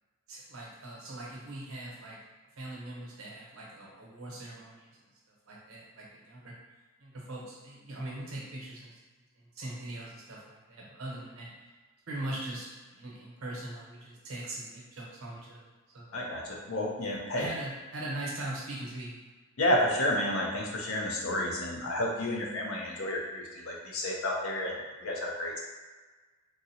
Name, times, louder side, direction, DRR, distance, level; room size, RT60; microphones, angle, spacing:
voice 1, 0.3-2.2 2.6-5.0 5.5-6.6 7.0-9.0 9.4-11.7 12.1-16.1 17.3-19.2, right 1 dB, 70° right, -4 dB, 0.8 m, -41 dB
voice 2, 16.1-17.5 19.6-25.6, left 1 dB, 65° left, -2 dB, 0.6 m, -31 dB
3.7 x 2.0 x 2.7 m, 1.3 s
head